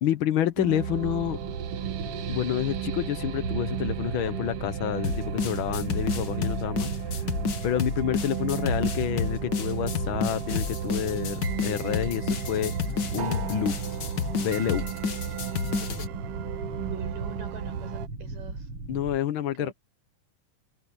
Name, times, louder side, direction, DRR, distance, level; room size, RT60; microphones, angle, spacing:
voice 1, 0.0-1.4 2.3-6.9 7.6-12.7 13.1-13.8 14.4-14.9 18.9-19.7, left 11 dB, 75° left, 1.2 m, -28 dB
sound 1, 0.6-18.1, right 10 dB, 65° right, 1.5 m, -34 dB
sound 2, 0.9-19.2, right 2 dB, 40° right, 4.9 m, -37 dB
sound 3, 5.0-16.1, left 6 dB, 50° left, 1.3 m, -30 dB
voice 2, 16.8-18.7 19.6-19.7, right 7 dB, 90° right, 6.9 m, -44 dB
omnidirectional pair, 3.7 m